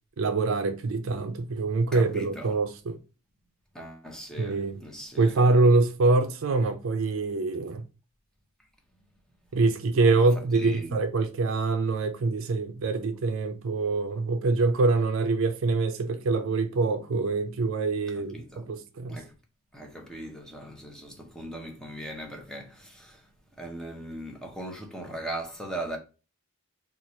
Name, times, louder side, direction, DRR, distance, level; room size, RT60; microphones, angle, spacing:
voice 1, 0.2-3.0 4.4-4.8 5.2-7.8 9.5-19.2, right 3 dB, 60° right, 0.4 m, -25 dB
voice 2, 1.9-2.6 3.7-5.4 10.0-10.2 10.6-11.0 18.1-18.7 19.1-19.4 19.7-23.3 23.6-26.0, right 1 dB, 5° left, 0.6 m, -39 dB
2.9 x 2.3 x 4.0 m
head